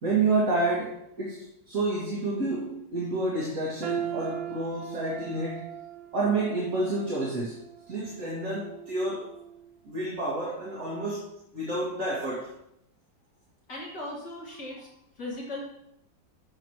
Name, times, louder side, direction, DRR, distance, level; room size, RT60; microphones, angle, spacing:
voice 1, 0.0-5.7 6.1-7.6 7.9-9.3 9.8-12.5, right 2 dB, 45° right, -6 dB, 2.4 m, -29 dB
sound 1, 3.8-9.8 10.2-10.4 11.1-11.2, right 9 dB, 90° right, 1.7 m, -39 dB
voice 2, 13.7-14.9 15.2-15.6, left 2 dB, 65° left, -4 dB, 2.8 m, -37 dB
12.0 x 7.2 x 3.1 m, 0.78 s
omnidirectional pair, 2.0 m